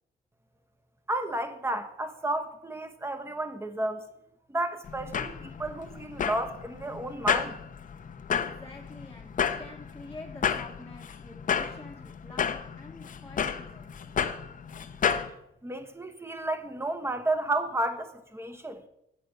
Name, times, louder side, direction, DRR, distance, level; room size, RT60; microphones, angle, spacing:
voice 1, 1.1-4.1 4.5-7.6 15.6-18.8, right 2 dB, 10° right, 1.0 m, -32 dB
sound 1, 4.8-15.3, left 7 dB, 40° left, 0.7 m, -32 dB
voice 2, 8.4-14.0, left 2 dB, 15° left, 1.1 m, -47 dB
8.0 x 5.9 x 6.6 m
cardioid pair, 90°, 20 cm